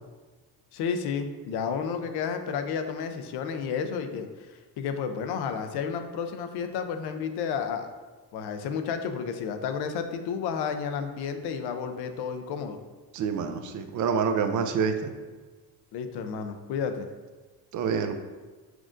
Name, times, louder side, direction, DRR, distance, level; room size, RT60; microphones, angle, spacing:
voice 1, 0.7-4.3 4.8-7.9 8.3-12.8 15.9-17.1, left 6 dB, 75° left, 7 dB, 0.5 m, -31 dB
voice 2, 13.1-15.1 17.7-18.1, right 6 dB, 50° right, 8 dB, 0.4 m, -27 dB
6.0 x 2.5 x 2.4 m, 1.3 s
cardioid pair, 105°, 40 cm